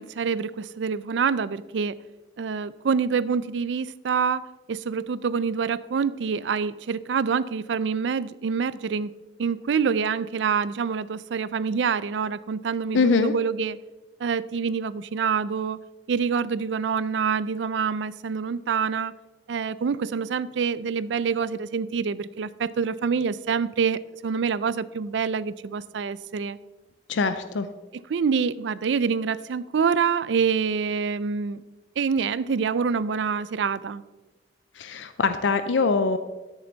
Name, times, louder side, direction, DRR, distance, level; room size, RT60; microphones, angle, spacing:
voice 1, 0.0-2.0 2.4-4.4 4.7-9.1 9.4-13.8 14.2-15.8 16.1-19.1 19.5-26.6 28.1-31.6 32.0-34.0, right 6 dB, 75° right, 18 dB, 0.4 m, -26 dB
voice 2, 12.9-13.3 27.1-27.7 34.8-36.2, left 4 dB, 90° left, 10 dB, 0.5 m, -23 dB
13.0 x 6.8 x 3.9 m, 1.1 s
head